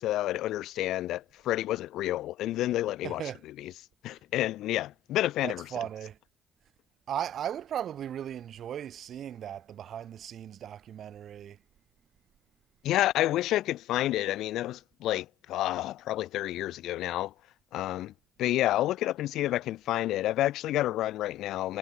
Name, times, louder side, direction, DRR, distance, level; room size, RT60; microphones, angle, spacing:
voice 1, 0.0-3.2 3.6-3.7 4.0-5.6 12.8-17.3 17.7-18.1 18.4-21.8, left 14 dB, 85° left, 0.5 m, -29 dB
voice 2, 3.0-3.4 5.4-6.2 7.1-11.6, right 10 dB, 65° right, 7.0 m, -37 dB
cardioid pair, 90°, 0 cm